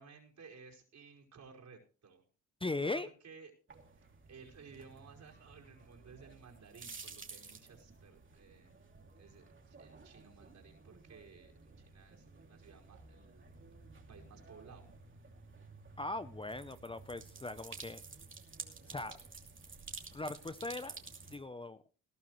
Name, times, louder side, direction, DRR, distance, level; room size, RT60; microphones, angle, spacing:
voice 1, 0.0-2.2 2.8-3.5 4.3-8.7 9.2-13.5 14.1-14.8, right 5 dB, 60° right, 0 dB, 5.0 m, -56 dB
voice 2, 2.6-3.1 16.0-18.0 18.9-19.2 20.1-21.0 21.3-21.8, left 2 dB, 15° left, 13 dB, 0.7 m, -39 dB
sound 1, 3.7-21.4, right 4 dB, 35° right, 2.7 m, -53 dB
19.0 x 12.0 x 3.2 m, 0.37 s
cardioid pair, 75°, 33 cm